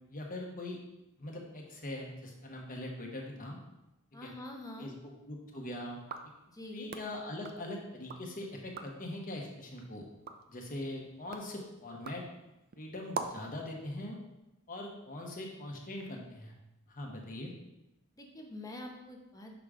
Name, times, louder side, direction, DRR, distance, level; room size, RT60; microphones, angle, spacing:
voice 1, 0.1-0.8 1.2-3.6 4.2-4.3 4.8-6.0 6.7-10.1 10.5-12.2 12.8-14.2 14.7-16.5 16.9-17.5, left 1 dB, 40° left, 0 dB, 1.0 m, -42 dB
voice 2, 4.1-4.9 6.5-6.9 18.2-19.6, left 1 dB, 15° left, 1 dB, 0.7 m, -45 dB
sound 1, 6.0-8.3 8.6-9.1 9.6-13.6, right 5 dB, 45° right, 0.4 m, -45 dB
6.0 x 3.7 x 4.9 m, 0.95 s
head